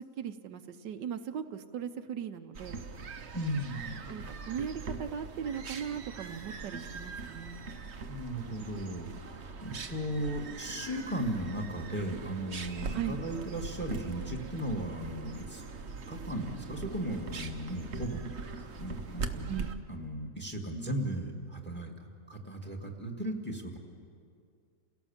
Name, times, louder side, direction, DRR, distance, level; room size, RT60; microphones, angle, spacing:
voice 1, 0.0-2.8 4.1-7.6 12.9-13.2 19.5-19.7, right 8 dB, 80° right, 8 dB, 1.5 m, -38 dB
sound 1, 2.5-19.8, right 4 dB, 45° right, 1.1 m, -41 dB
voice 2, 3.3-3.9 8.1-15.6 16.1-18.3 18.8-23.8, right 1 dB, 5° left, 2 dB, 2.0 m, -36 dB
29.0 x 17.5 x 7.3 m, 2.3 s
omnidirectional pair, 1.9 m